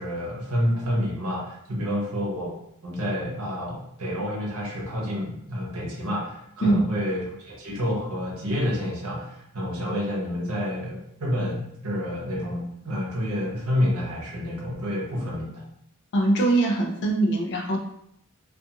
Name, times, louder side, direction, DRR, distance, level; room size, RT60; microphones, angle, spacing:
voice 1, 0.0-2.5 2.8-15.6, equal, 85° right, -3 dB, 0.8 m, -29 dB
voice 2, 16.1-17.8, right 2 dB, 50° left, 1 dB, 0.4 m, -22 dB
2.4 x 2.4 x 2.7 m, 0.76 s
head